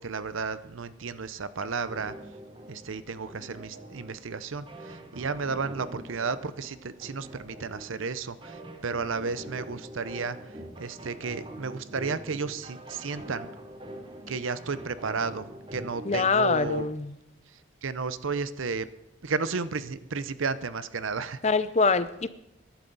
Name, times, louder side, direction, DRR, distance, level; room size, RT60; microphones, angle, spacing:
voice 1, 0.0-2.1 2.7-13.5 14.3-16.9 17.8-18.9 19.2-21.4, right 4 dB, 80° right, 15 dB, 0.7 m, -33 dB
sound 1, 1.8-16.8, right 1 dB, 25° right, 1.1 m, -44 dB
voice 2, 16.1-17.1 21.4-22.3, left 4 dB, 35° left, 14 dB, 0.5 m, -24 dB
22.5 x 11.5 x 4.0 m, 0.85 s
head